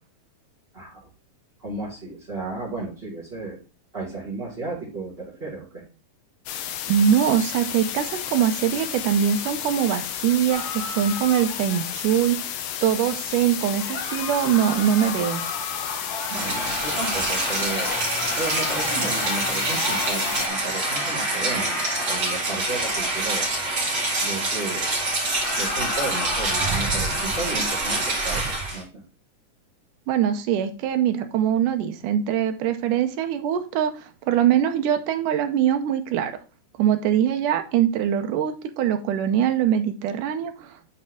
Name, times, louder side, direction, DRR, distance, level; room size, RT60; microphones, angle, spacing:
voice 1, 0.7-1.1 1.6-3.6 3.9-5.8 16.3-18.0 18.3-23.4 24.2-25.1 25.5-28.9, right 3 dB, 20° right, -7 dB, 2.5 m, -33 dB
sound 1, 6.5-20.5, left 10 dB, 85° left, 2.4 m, -32 dB
voice 2, 6.9-12.4 12.8-15.4 30.1-33.9 34.3-36.4 36.8-40.5, right 9 dB, 80° right, 7 dB, 2.3 m, -22 dB
sound 2, 10.5-12.0 13.8-23.4 25.1-26.8, left 3 dB, 55° left, 1.1 m, -34 dB
Rain, 16.2-28.8, right 2 dB, 35° right, 3.4 m, -26 dB
9.9 x 4.4 x 3.7 m, 0.34 s
omnidirectional pair, 3.7 m